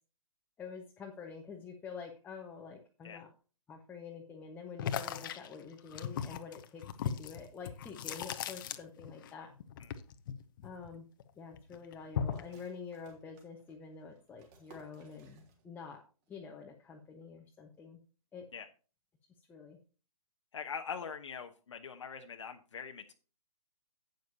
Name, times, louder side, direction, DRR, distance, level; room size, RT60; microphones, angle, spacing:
voice 1, 0.6-3.3 3.7-9.5 10.6-11.1 11.4-16.0 16.3-18.0 18.3-18.5 19.5-19.8, left 5 dB, 10° left, 1 dB, 1.1 m, -47 dB
sound 1, 4.8-9.3 9.6-11.2 11.5-12.5, left 8 dB, 35° left, 1.0 m, -38 dB
sound 2, 12.3-16.0 16.2-16.3 16.8-17.2, right 3 dB, 30° right, 3.3 m, -62 dB
voice 2, 20.5-23.1, left 6 dB, 55° left, 4 dB, 1.1 m, -43 dB
12.0 x 9.2 x 2.8 m, 0.35 s
figure-of-eight pair, 135°, 19 cm